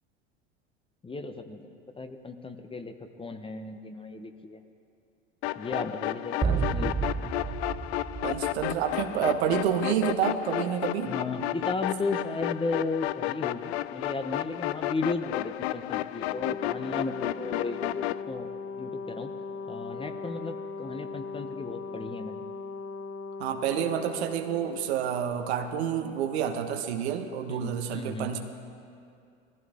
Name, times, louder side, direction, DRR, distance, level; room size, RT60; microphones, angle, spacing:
voice 1, 1.0-4.6 5.6-6.4 6.7-7.2 11.1-18.5 18.8-19.3 19.7-22.4 27.5-28.3, left 3 dB, 15° left, 7 dB, 1.0 m, -35 dB
sound 1, 5.4-18.2, left 15 dB, 75° left, 0.5 m, -32 dB
sound 2, 6.4-9.3, right 5 dB, 15° right, 0.6 m, -31 dB
voice 2, 6.4-6.7 8.2-11.1 23.4-28.4, right 8 dB, 75° right, 5 dB, 1.4 m, -29 dB
Brass instrument, 16.2-24.9, left 4 dB, 55° left, 1.4 m, -39 dB
20.0 x 15.0 x 3.7 m, 2.4 s
hypercardioid pair, 80°, 32 cm